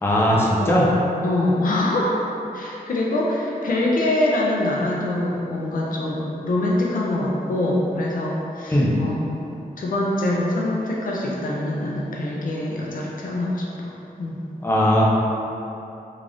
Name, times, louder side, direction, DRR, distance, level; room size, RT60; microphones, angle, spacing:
voice 1, 0.0-0.9 8.7-8.9 14.6-15.0, equal, 15° left, -5 dB, 0.6 m, -18 dB
voice 2, 1.2-2.2 2.5-9.3 9.8-13.9 14.2-14.4, left 1 dB, 70° left, -4 dB, 0.5 m, -24 dB
3.7 x 2.5 x 3.4 m, 2.8 s
wide cardioid pair, 110°, 15 cm